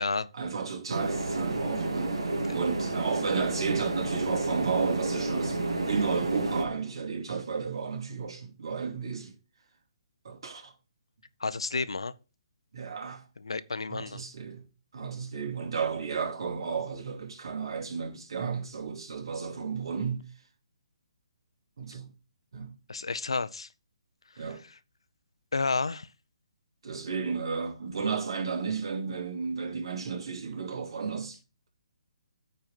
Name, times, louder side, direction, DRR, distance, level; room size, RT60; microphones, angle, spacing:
voice 1, 0.3-2.2 2.5-5.6 5.9-9.3 10.2-10.7 12.7-13.2 13.9-14.6 14.9-20.2 21.8-22.1 22.5-22.7 24.4-24.6 26.8-31.4, right 5 dB, 65° right, 2.8 m, -33 dB
sound 1, 0.9-6.7, right 2 dB, 80° right, 2.1 m, -30 dB
voice 2, 11.4-12.1 13.4-14.2 22.9-23.7 24.4-24.5 25.5-26.1, left 4 dB, 85° left, 0.7 m, -31 dB
9.3 x 4.5 x 5.7 m
hypercardioid pair, 145°, 3 cm